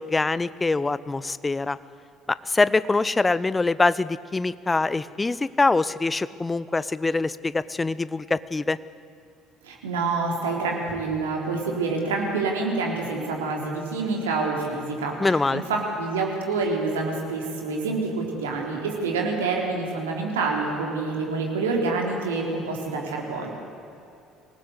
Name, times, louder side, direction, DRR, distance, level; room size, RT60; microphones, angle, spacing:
voice 1, 0.0-1.8 2.3-8.8 15.2-15.6, left 3 dB, 20° left, 17 dB, 0.7 m, -24 dB
voice 2, 9.6-23.5, right 3 dB, 75° right, 0 dB, 3.9 m, -27 dB
25.0 x 19.0 x 8.3 m, 2.7 s
figure-of-eight pair, 55°, 0 cm